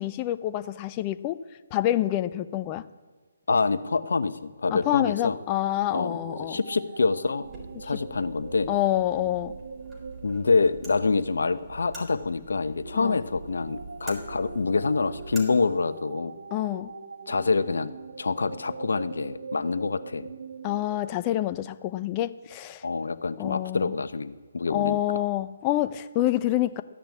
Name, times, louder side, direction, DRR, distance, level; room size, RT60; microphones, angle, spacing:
voice 1, 0.0-1.4 1.7-2.8 4.7-6.6 8.7-9.5 12.9-13.2 16.5-16.9 20.6-22.8 23.4-23.9 24.7-26.8, left 14 dB, 25° left, 12 dB, 0.7 m, -27 dB
voice 2, 3.5-5.4 5.9-7.5 7.8-8.7 10.2-16.3 17.3-17.9 18.2-20.3 22.8-25.0, left 4 dB, 70° left, 12 dB, 1.0 m, -26 dB
sound 1, 4.7-11.8 12.7-21.2, right 4 dB, 65° right, 1.7 m, -43 dB
sound 2, 7.4-15.4, right 3 dB, 15° right, 4.1 m, -45 dB
14.5 x 10.5 x 8.5 m, 1.5 s
figure-of-eight pair, 145°, 0 cm